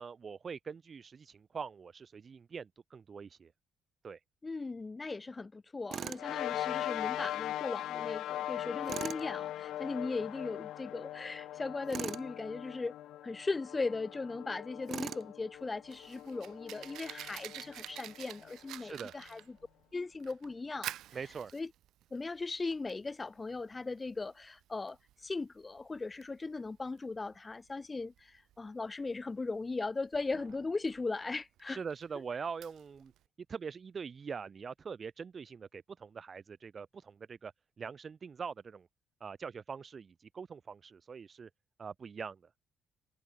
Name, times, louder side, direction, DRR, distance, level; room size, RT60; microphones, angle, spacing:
voice 1, 0.0-3.5 4.0-4.2 18.8-19.1 21.1-21.5 31.7-33.1 33.5-37.5 37.8-38.9 39.2-41.5 41.8-42.4, right 6 dB, 30° right, 0.8 m, -43 dB
voice 2, 4.4-12.9 13.2-19.6 19.9-20.9 21.5-21.7 22.1-25.0 25.2-31.8, left 3 dB, 15° left, 1.5 m, -38 dB
Tools, 5.9-6.3 8.9-9.2 11.9-12.3 14.9-15.3, right 9 dB, 45° right, 0.4 m, -39 dB
sound 1, 6.2-18.9, left 13 dB, 75° left, 0.9 m, -40 dB
Fire, 15.5-33.2, right 13 dB, 75° right, 0.8 m, -50 dB
cardioid pair, 175°, 0 cm